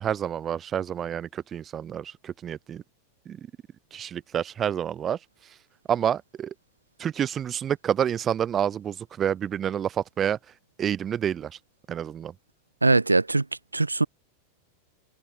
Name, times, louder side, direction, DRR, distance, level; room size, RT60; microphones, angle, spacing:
voice 1, 0.0-2.8 3.3-3.4 3.9-5.2 5.9-6.5 7.0-10.4 10.8-11.6 11.9-12.3, right 9 dB, 25° right, 2.6 m, -28 dB
voice 2, 12.8-13.5 13.7-14.1, right 3 dB, 80° right, 0.5 m, -21 dB
figure-of-eight pair, 90°, 0 cm